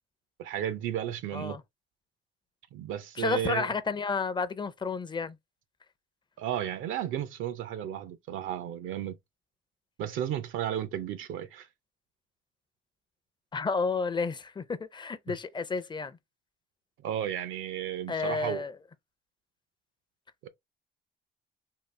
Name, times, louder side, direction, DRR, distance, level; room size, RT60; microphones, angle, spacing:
voice 1, 0.4-1.6 2.7-3.7 6.4-9.2 10.0-11.7 17.0-18.6 20.4-20.5, right 10 dB, 85° right, 0.5 m, -33 dB
voice 2, 3.2-5.4 13.5-16.2 18.1-18.7, left 4 dB, 25° left, 0.5 m, -31 dB
3.7 x 2.4 x 3.1 m
cardioid pair, 90°, 20 cm